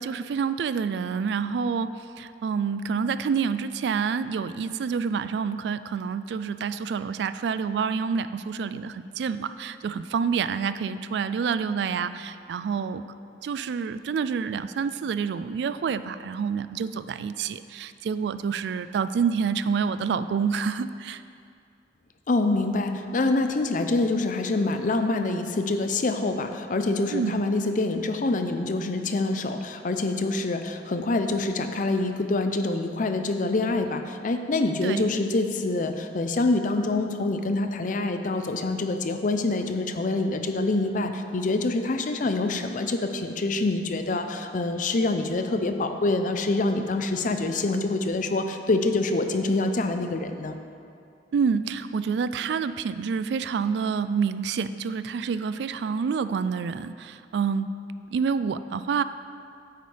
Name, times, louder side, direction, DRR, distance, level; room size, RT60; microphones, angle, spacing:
voice 1, 0.0-13.1 13.4-21.2 27.1-27.5 34.8-35.1 51.3-57.7 58.1-59.0, right 6 dB, 70° right, 13 dB, 0.3 m, -28 dB
voice 2, 22.3-50.6, left 2 dB, 50° left, 7 dB, 0.5 m, -26 dB
9.4 x 8.1 x 3.3 m, 2.4 s
head